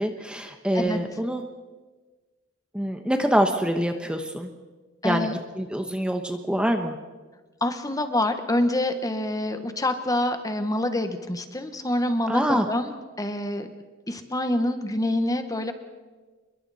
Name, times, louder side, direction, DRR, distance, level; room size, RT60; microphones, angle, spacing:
voice 1, 0.0-1.4 2.7-4.5 5.0-5.3 5.6-6.9 12.3-12.7, equal, 5° right, 5 dB, 1.1 m, -25 dB
voice 2, 5.0-5.3 7.6-12.9 13.2-13.7 14.1-15.7, left 1 dB, 20° left, 8 dB, 1.3 m, -26 dB
28.5 x 22.5 x 4.2 m, 1.3 s
head